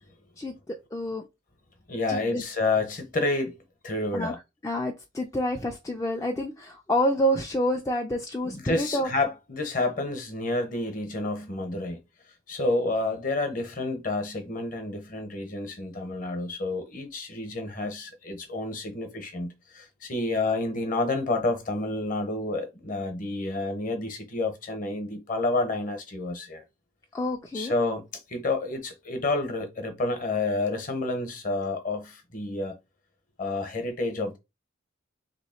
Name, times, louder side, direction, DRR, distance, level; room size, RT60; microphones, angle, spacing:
voice 1, 0.4-1.3 2.1-2.4 4.1-4.4 4.6-9.1 27.1-27.7, equal, 15° left, 0.3 m, -28 dB
voice 2, 1.9-3.5 3.8-4.4 8.4-12.0 12.5-26.6 27.5-32.8 33.4-34.4, left 2 dB, 40° left, 0.9 m, -29 dB
3.1 x 2.9 x 4.3 m
head